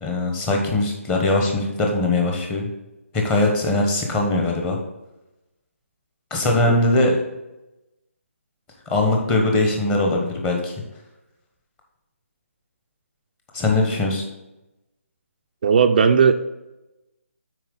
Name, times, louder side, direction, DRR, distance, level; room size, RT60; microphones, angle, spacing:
voice 1, 0.0-2.7 3.1-4.8 6.3-7.2 8.9-10.7 13.5-14.2, left 2 dB, 15° left, 1 dB, 1.0 m, -21 dB
voice 2, 15.6-16.3, right 6 dB, 40° right, 5 dB, 0.4 m, -16 dB
9.1 x 4.4 x 3.9 m, 0.98 s
figure-of-eight pair, 155°, 8 cm